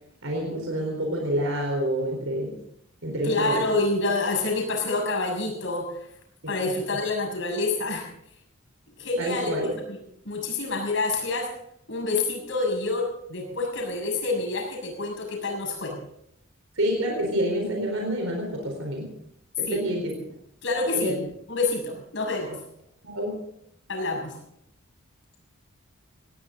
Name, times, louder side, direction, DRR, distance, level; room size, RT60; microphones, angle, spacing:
voice 1, 0.2-2.5 3.0-3.6 9.2-9.7 16.8-19.1 19.6-20.1 20.9-21.1 23.0-23.3, equal, 70° right, 1 dB, 4.2 m, -27 dB
voice 2, 3.2-6.1 6.5-8.1 9.0-10.0 10.2-11.5 11.9-16.0 19.7-19.8 20.6-21.2 21.5-22.6 23.9-24.4, left 3 dB, 60° left, 0 dB, 6.7 m, -27 dB
19.5 x 17.0 x 3.9 m, 0.74 s
head